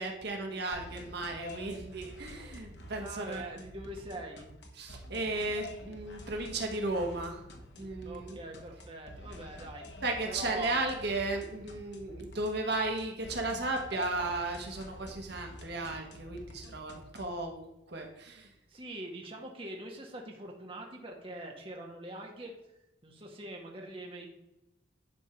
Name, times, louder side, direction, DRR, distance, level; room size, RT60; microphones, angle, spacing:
voice 1, 0.0-3.4 4.8-7.4 7.8-8.4 10.0-18.5, right 2 dB, 60° right, 2 dB, 1.3 m, -35 dB
sound 1, 0.7-17.4, left 1 dB, 60° left, 1.2 m, -48 dB
voice 2, 3.0-4.4 8.0-10.0 10.3-10.8 18.7-22.5 23.0-24.3, right 1 dB, 30° right, 0 dB, 1.3 m, -43 dB
10.5 x 3.6 x 5.9 m, 0.94 s
head